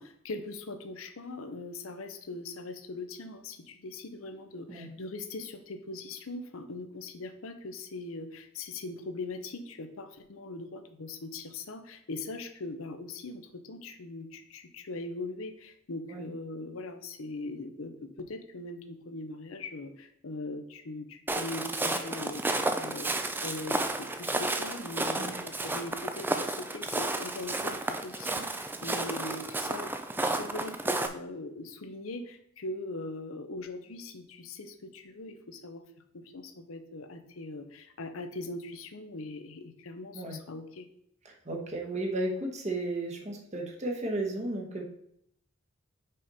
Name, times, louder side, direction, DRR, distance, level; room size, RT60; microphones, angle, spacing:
voice 1, 0.0-23.1 23.4-29.9 30.2-35.8 36.1-40.9, left 2 dB, 75° left, 8 dB, 0.7 m, -41 dB
Walk footsteps, 21.3-31.1, right 2 dB, 10° right, 0.3 m, -32 dB
voice 2, 41.2-44.8, right 2 dB, 30° right, 1 dB, 1.1 m, -34 dB
5.5 x 5.1 x 4.1 m, 0.71 s
head